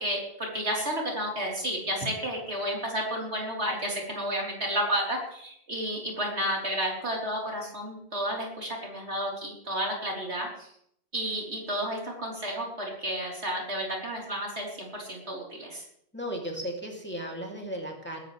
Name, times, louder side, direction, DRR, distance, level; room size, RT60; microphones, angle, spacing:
voice 1, 0.0-10.7 11.1-15.8, equal, 85° right, -2 dB, 4.3 m, -31 dB
voice 2, 16.1-18.2, equal, 10° left, -1 dB, 3.0 m, -35 dB
21.0 x 13.5 x 3.4 m, 0.70 s
omnidirectional pair, 1.1 m